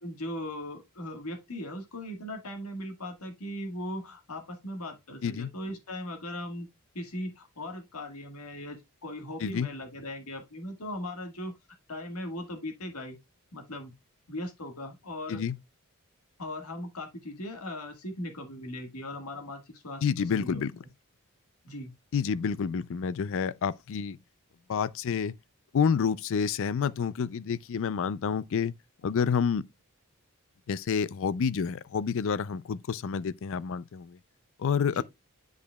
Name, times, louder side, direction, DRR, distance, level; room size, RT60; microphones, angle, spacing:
voice 1, 0.0-6.7 6.9-11.5 11.9-13.2 13.5-13.9 14.3-15.4 16.4-20.6 21.6-21.9 34.9-35.0, left 1 dB, 75° left, 1.6 m, -38 dB
voice 2, 20.0-20.7 22.1-24.2 24.7-25.4 25.7-28.7 29.0-29.6 30.7-34.2 34.6-35.0, left 6 dB, 60° left, 0.4 m, -29 dB
10.5 x 4.9 x 2.2 m
head